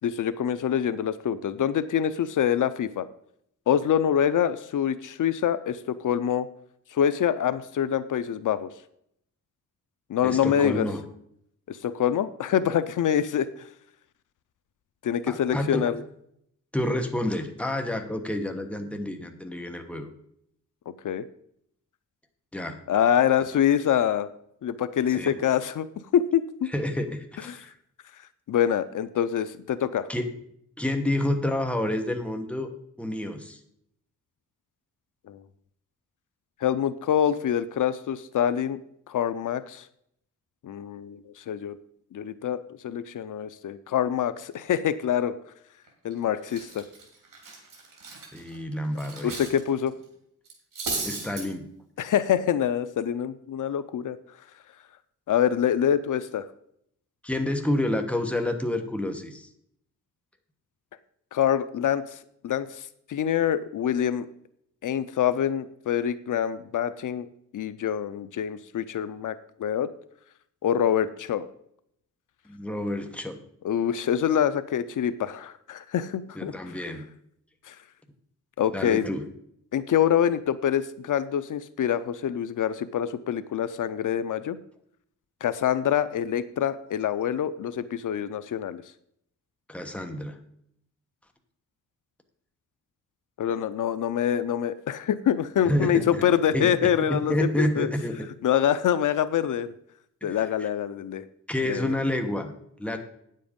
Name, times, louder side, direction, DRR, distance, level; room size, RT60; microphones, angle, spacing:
voice 1, 0.0-3.1 3.7-6.5 6.9-8.7 10.1-10.9 11.7-13.7 15.0-15.9 21.0-21.2 22.9-24.3 24.6-25.9 26.1-26.7 27.5-27.7 28.5-30.1 35.3-35.4 36.6-38.8 39.1-39.9 40.6-41.8 42.1-45.3 46.0-46.8 49.2-49.9 52.0-54.2 55.3-56.4 61.3-62.2 62.4-64.3 64.8-67.3 67.5-69.9 70.6-71.5 73.6-76.5 77.7-77.8 78.6-79.1 79.7-84.6 85.4-88.8 93.4-97.9 98.4-99.7 100.2-101.2 101.7-101.9, left 9 dB, 75° left, 14 dB, 0.6 m, -25 dB
voice 2, 10.2-11.0 15.3-15.9 16.7-20.1 22.5-22.8 25.1-25.4 26.7-27.7 30.1-30.3 30.8-32.7 33.0-33.6 48.3-49.3 51.0-51.7 57.2-59.5 72.4-73.4 76.3-77.1 78.7-79.2 89.7-90.4 95.6-96.3 96.5-98.3 100.2-100.7 101.5-103.0, left 1 dB, 5° left, 4 dB, 1.2 m, -29 dB
Cutlery silverware, 45.9-46.1 46.5-49.6 49.9-50.0 50.4-51.4, right 4 dB, 85° right, 3.2 m, -35 dB
9.3 x 7.5 x 5.2 m, 0.71 s
wide cardioid pair, 125°, 32 cm